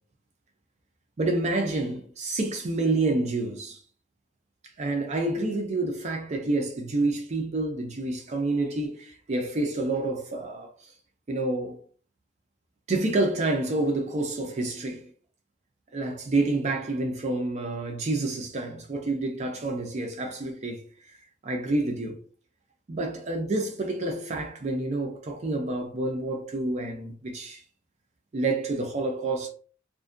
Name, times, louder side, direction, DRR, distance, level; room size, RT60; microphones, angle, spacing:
voice 1, 1.2-3.8 4.8-10.9 11.3-11.8 12.9-15.1 15.9-21.2 21.4-22.2 22.9-27.6 28.3-29.5, right 2 dB, 40° right, 0.4 m, -28 dB
2.5 x 2.1 x 2.4 m
head